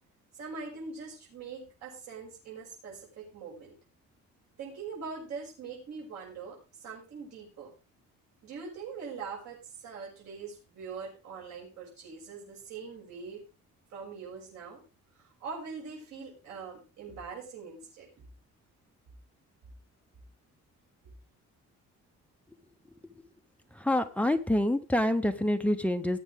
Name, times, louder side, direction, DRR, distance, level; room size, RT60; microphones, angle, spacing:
voice 1, 0.3-3.7 4.6-7.7 8.4-13.4 13.9-14.8 15.1-18.1, right 5 dB, 65° right, -4 dB, 6.6 m, -42 dB
voice 2, 23.7-26.2, left 1 dB, 5° left, 7 dB, 0.7 m, -27 dB
18.5 x 8.6 x 3.6 m, 0.31 s
cardioid pair, 160°, 29 cm